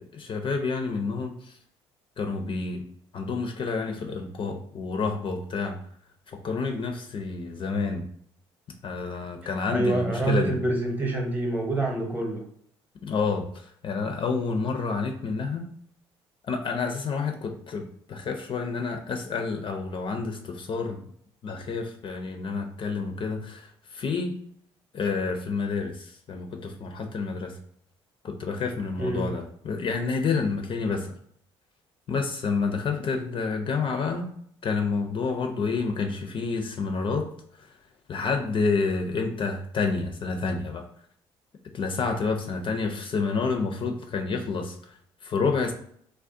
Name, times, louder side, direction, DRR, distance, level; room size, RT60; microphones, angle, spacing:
voice 1, 0.0-1.6 2.2-2.8 3.1-5.7 6.3-8.1 8.8-10.5 13.0-15.7 16.5-21.0 21.4-24.3 24.9-27.5 28.2-31.1 32.1-34.3 34.6-37.3 38.1-40.9 41.7-44.8 45.2-45.7, left 4 dB, 40° left, 4 dB, 0.4 m, -29 dB
voice 2, 9.7-12.4 29.0-29.2, right 2 dB, 10° right, 1 dB, 0.8 m, -26 dB
2.4 x 2.0 x 2.6 m, 0.63 s
hypercardioid pair, 55°, 13 cm